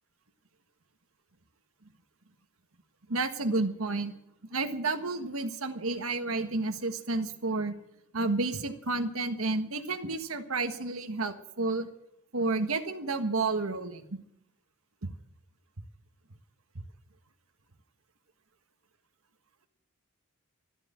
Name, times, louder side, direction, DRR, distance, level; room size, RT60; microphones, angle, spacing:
voice 1, 3.1-4.1 4.5-7.7 8.1-11.9 12.3-14.0 15.0-15.1, right 3 dB, 70° right, 8 dB, 1.5 m, -31 dB
13.5 x 12.5 x 7.5 m, 0.76 s
head